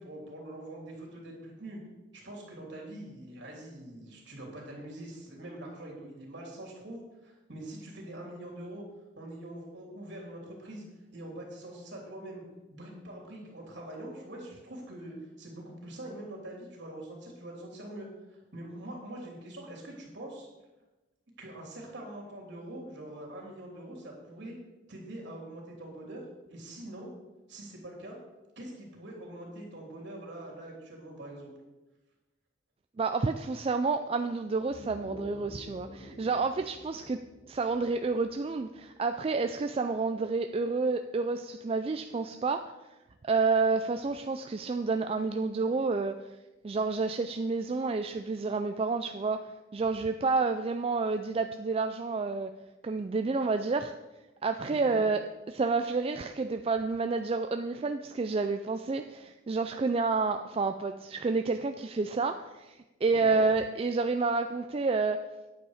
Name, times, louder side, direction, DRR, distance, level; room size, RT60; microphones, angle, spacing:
voice 1, 0.0-1.8 2.1-8.8 9.2-10.8 11.1-12.4 12.7-20.5 21.4-24.6 24.9-27.1 27.5-28.2 28.6-31.5 54.6-55.0 63.1-63.4, right 1 dB, 60° right, -1 dB, 3.0 m, -44 dB
voice 2, 33.0-37.2 37.5-42.7 43.2-46.3 46.6-49.4 49.7-52.5 52.8-53.9 54.4-65.2, right 4 dB, 30° right, 7 dB, 0.3 m, -29 dB
sound 1, 34.6-39.4, left 1 dB, 35° left, 0.8 m, -49 dB
9.6 x 8.3 x 4.9 m, 1.1 s
head